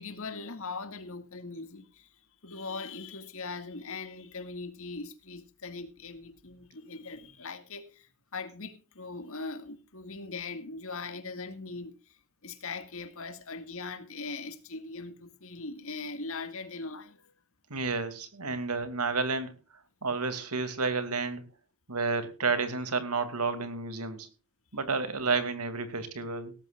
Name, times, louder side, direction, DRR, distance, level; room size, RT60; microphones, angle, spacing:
voice 1, 0.0-2.1 2.4-17.3, left 3 dB, 65° left, 2.0 m, -40 dB
voice 2, 17.7-19.5 20.0-21.4 21.9-24.3 24.7-26.5, right 4 dB, 85° right, 2.6 m, -31 dB
18.0 x 14.0 x 2.5 m
head